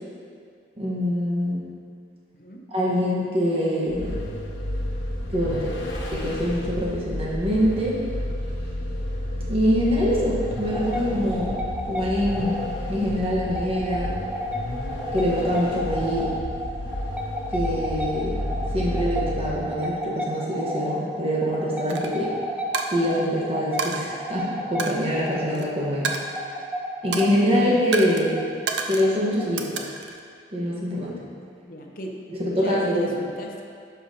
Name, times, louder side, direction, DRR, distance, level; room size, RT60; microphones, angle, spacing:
voice 1, 0.8-1.6 2.7-4.2 5.3-5.7 6.1-8.0 9.5-12.6 12.9-14.2 15.1-16.4 17.5-18.4 18.7-22.3 22.9-26.1 27.0-28.4 28.9-29.7 30.5-31.2 32.3-33.2, equal, 30° right, -6 dB, 1.2 m, -24 dB
Vehicle, 3.9-19.8, left 1 dB, 80° left, 1.0 m, -31 dB
sound 1, 10.4-29.8, equal, 5° right, 0.4 m, -33 dB
Coin (dropping), 21.9-22.1 22.7-23.3 23.8-24.0 24.8-25.6 26.0-26.7 27.1-27.4 27.9-28.2 28.7-29.1 29.6-30.2, right 4 dB, 80° right, 0.5 m, -30 dB
voice 2, 31.5-32.2 32.5-33.6, equal, 50° left, 1 dB, 0.7 m, -37 dB
11.5 x 5.6 x 2.8 m, 2.2 s
head